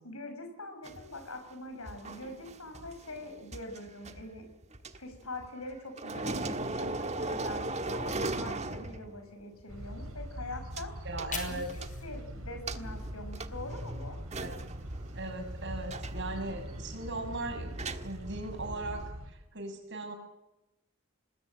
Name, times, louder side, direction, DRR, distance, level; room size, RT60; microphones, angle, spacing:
voice 1, 0.0-4.5 5.0-10.9 11.5-14.2, left 2 dB, 80° left, 6 dB, 6.0 m, -43 dB
sound 1, 0.8-5.7 6.0-9.3 9.6-9.7 10.8-10.9 11.2-12.2 12.7-19.1, right 2 dB, 30° right, 1.5 m, -39 dB
sound 2, 9.7-19.3, equal, 75° right, 4.5 m, -42 dB
Fire, 10.9-14.1 14.5-16.5, left 5 dB, 35° left, 5.5 m, -47 dB
voice 2, 11.0-11.7 14.4-14.7 15.1-17.7 18.0-20.1, right 2 dB, 55° right, 5 dB, 6.7 m, -38 dB
26.5 x 20.5 x 7.6 m, 0.92 s
head